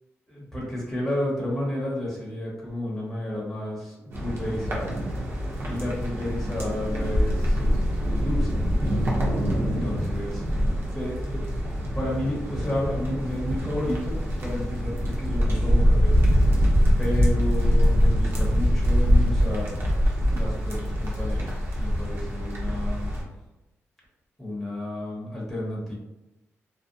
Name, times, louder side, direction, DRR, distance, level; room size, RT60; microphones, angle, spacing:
voice 1, 0.3-4.9 5.6-7.6 8.0-8.6 9.6-11.6 11.9-16.1 17.0-19.8 20.3-23.1 24.4-25.9, left 1 dB, 5° left, -6 dB, 0.8 m, -31 dB
sound 1, 4.1-23.2, equal, 50° right, 0.7 m, -24 dB
2.5 x 2.0 x 2.6 m, 0.96 s
cardioid pair, 95°, 5 cm